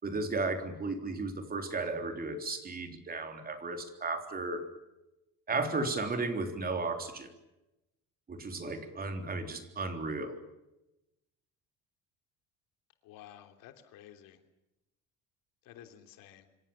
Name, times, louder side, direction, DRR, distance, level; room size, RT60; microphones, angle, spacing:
voice 1, 0.0-4.7 5.5-7.3 8.3-10.4, right 3 dB, 25° right, 6 dB, 3.7 m, -34 dB
voice 2, 13.0-14.4 15.6-16.5, left 11 dB, 75° left, 7 dB, 3.4 m, -52 dB
26.5 x 26.0 x 7.2 m, 0.95 s
cardioid pair, 140°, 33 cm